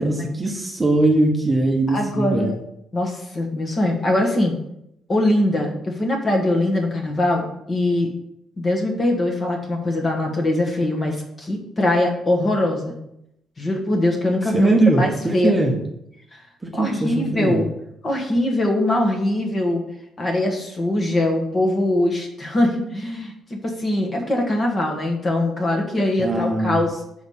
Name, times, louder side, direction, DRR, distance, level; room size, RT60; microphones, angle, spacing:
voice 1, 0.0-2.5 14.5-15.8 16.6-17.7 26.2-26.8, right 2 dB, 15° right, 1 dB, 1.0 m, -20 dB
voice 2, 1.9-2.5 2.9-4.5 5.1-8.1 8.6-13.0 13.6-15.5 16.3-16.4 16.7-17.7 18.0-19.8 20.2-27.0, left 1 dB, 25° left, 1 dB, 1.3 m, -22 dB
6.3 x 4.9 x 5.6 m, 0.79 s
cardioid pair, 150°, 0 cm